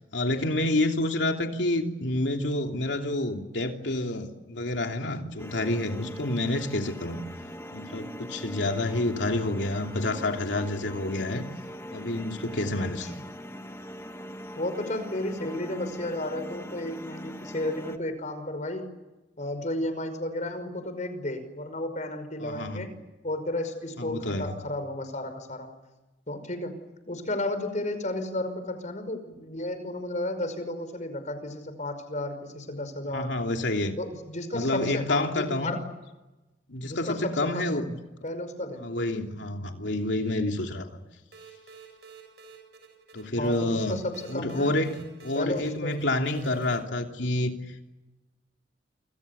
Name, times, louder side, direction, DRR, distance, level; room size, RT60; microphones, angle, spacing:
voice 1, 0.1-7.2 7.7-11.4 11.9-13.0 22.4-22.9 24.0-24.6 33.1-34.0 34.5-35.8 36.7-38.0 38.8-40.9 43.1-44.0 44.3-47.6, left 1 dB, 85° left, 3 dB, 3.1 m, -28 dB
sound 1, 5.4-18.0, equal, 15° left, 1.7 m, -41 dB
voice 2, 12.8-13.1 14.5-18.9 19.4-25.7 26.3-26.7 27.1-33.4 34.0-35.8 36.8-37.8 38.2-38.8 43.4-44.8 45.3-46.0, left 1 dB, 45° left, 9 dB, 5.4 m, -33 dB
sound 2, 41.3-46.8, right 5 dB, 65° right, 7.7 m, -50 dB
29.0 x 26.5 x 7.1 m, 1.1 s
head